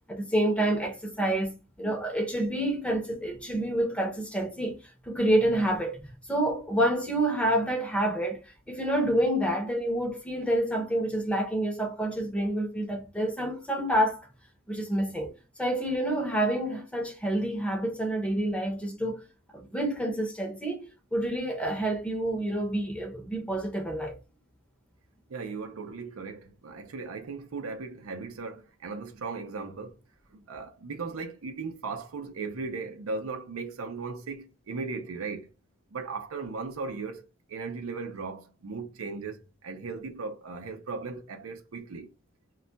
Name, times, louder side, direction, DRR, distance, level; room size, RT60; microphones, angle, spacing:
voice 1, 0.1-4.8 5.1-6.0 6.3-8.4 8.7-14.3 14.7-15.3 15.6-19.2 19.5-24.2, right 1 dB, 5° left, 0.6 m, -28 dB
voice 2, 25.3-30.0 30.3-35.5 35.9-37.2 37.5-42.1, right 4 dB, 90° right, 0.6 m, -37 dB
2.3 x 2.2 x 3.8 m
head